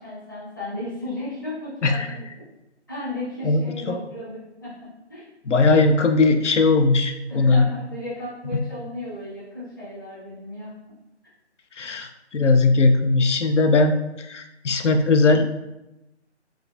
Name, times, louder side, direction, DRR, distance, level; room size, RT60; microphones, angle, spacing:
voice 1, 0.0-2.2 2.9-4.7 5.1-5.2 7.3-10.7, left 1 dB, 15° left, -10 dB, 0.8 m, -34 dB
voice 2, 5.5-7.7 11.8-15.5, left 3 dB, 85° left, 6 dB, 0.6 m, -19 dB
4.4 x 2.4 x 2.5 m, 0.94 s
figure-of-eight pair, 165°, 35 cm